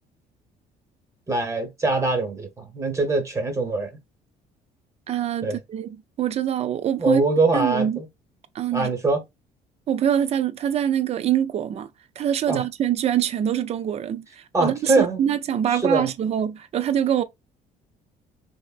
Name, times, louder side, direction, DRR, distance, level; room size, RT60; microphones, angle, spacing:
voice 1, 1.3-3.9 5.4-5.6 7.0-8.1 8.7-9.2 12.5-12.6 14.5-15.2 15.7-16.1, right 3 dB, 15° right, 1.0 m, -23 dB
voice 2, 5.1-7.2 7.5-8.0 8.5-8.9 9.9-11.9 12.2-17.2, right 9 dB, 40° right, 0.4 m, -24 dB
3.2 x 2.1 x 2.4 m
cardioid pair, 110°, 17 cm